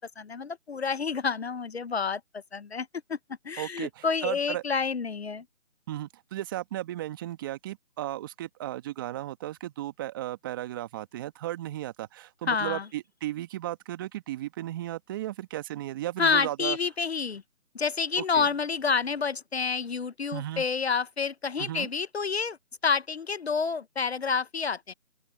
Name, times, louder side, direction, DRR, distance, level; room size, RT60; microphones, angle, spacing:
voice 1, 0.0-2.2 2.5-3.2 3.4-5.4 12.5-12.9 16.2-17.4 17.7-22.6 22.8-24.9, left 5 dB, 50° left, 1.0 m, -29 dB
voice 2, 3.6-4.6 5.9-16.8 18.2-18.5 20.3-20.6 21.6-21.9, right 14 dB, 15° right, 1.7 m, -35 dB
open air
figure-of-eight pair, 155°, 39 cm